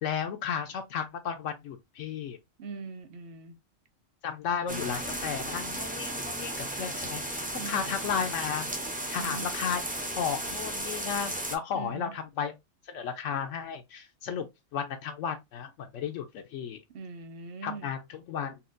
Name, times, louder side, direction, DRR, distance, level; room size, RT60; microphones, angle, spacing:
voice 1, 0.0-2.4 4.2-8.7 9.1-9.8 10.1-12.5 12.9-16.8 17.6-18.6, left 7 dB, 75° left, 0.9 m, -34 dB
voice 2, 2.6-3.6 7.5-8.0 9.2-9.5 11.7-12.2 16.9-17.9, right 4 dB, 55° right, 0.7 m, -41 dB
sound 1, 4.7-11.6, right 1 dB, 10° right, 0.4 m, -35 dB
4.2 x 2.3 x 2.5 m
omnidirectional pair, 1.3 m